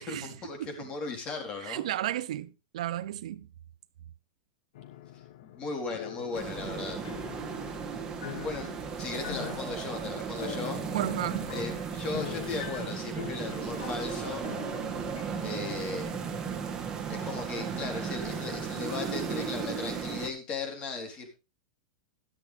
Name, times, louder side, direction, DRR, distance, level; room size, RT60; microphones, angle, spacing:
voice 1, 0.0-1.9 5.4-7.0 8.4-8.7 9.0-10.8 11.5-14.4 15.4-16.1 17.1-21.3, left 4 dB, 30° left, 3.8 m, -37 dB
voice 2, 1.6-3.5 10.9-11.5, right 12 dB, 70° right, 0.7 m, -33 dB
sound 1, 4.8-15.8, left 10 dB, 70° left, 1.1 m, -44 dB
sound 2, 6.3-20.3, right 6 dB, 20° right, 2.1 m, -35 dB
12.5 x 12.0 x 3.4 m
supercardioid pair, 150°, 4 cm